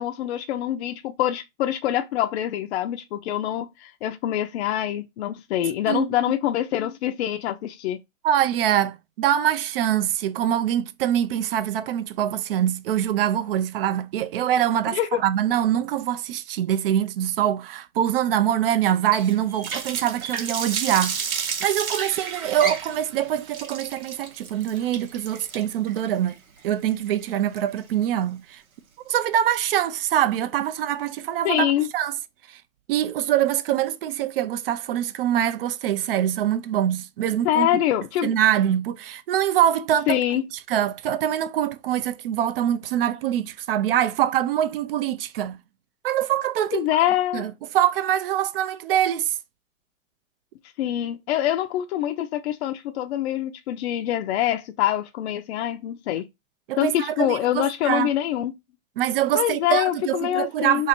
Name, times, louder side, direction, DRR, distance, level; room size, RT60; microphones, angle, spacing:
voice 1, 0.0-8.0 14.9-15.2 31.4-31.9 37.4-38.3 40.1-40.4 46.7-47.5 50.8-56.2 56.8-58.5 59.3-60.9, left 12 dB, 50° left, 0.5 m, -25 dB
voice 2, 8.2-26.4 26.6-28.6 29.1-32.1 32.9-37.7 38.2-40.2 40.7-45.6 46.0-46.9 47.3-49.4 56.7-58.1 59.0-60.9, right 11 dB, 45° right, 0.4 m, -24 dB
Water tap faucet, 19.1-28.0, right 5 dB, 90° right, 0.9 m, -32 dB
2.7 x 2.5 x 4.2 m
hypercardioid pair, 125°, 41 cm